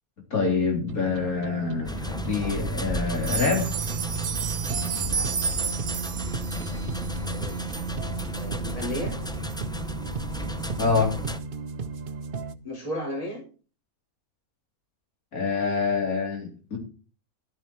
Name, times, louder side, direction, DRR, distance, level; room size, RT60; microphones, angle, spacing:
voice 1, 0.3-3.7 10.8-11.2 15.3-16.8, left 5 dB, 80° left, 1 dB, 4.0 m, -26 dB
sound 1, 0.9-12.6, right 6 dB, 45° right, 0.8 m, -34 dB
sound 2, 1.9-11.4, left 1 dB, 5° left, 0.3 m, -34 dB
sound 3, 3.1-7.9 8.4-8.5 8.9-9.0 9.5-9.6, right 6 dB, 75° right, 1.4 m, -32 dB
voice 2, 7.2-7.6 8.3-9.1 12.6-13.4, left 1 dB, 25° left, -2 dB, 4.2 m, -34 dB
13.0 x 9.2 x 4.6 m, 0.38 s
omnidirectional pair, 1.5 m